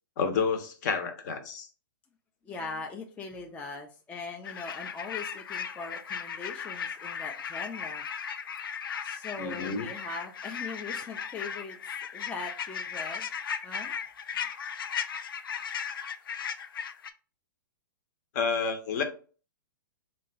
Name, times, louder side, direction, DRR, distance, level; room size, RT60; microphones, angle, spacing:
voice 1, 0.2-1.7 9.4-9.9 18.3-19.0, left 5 dB, 50° left, 7 dB, 0.8 m, -29 dB
voice 2, 2.4-8.0 9.0-11.8 12.1-13.3 13.6-13.9, left 4 dB, 10° left, 2 dB, 0.4 m, -40 dB
sound 1, 4.4-17.1, left 7 dB, 75° left, 0.4 m, -36 dB
3.8 x 2.2 x 3.8 m, 0.38 s
hypercardioid pair, 130°, 12 cm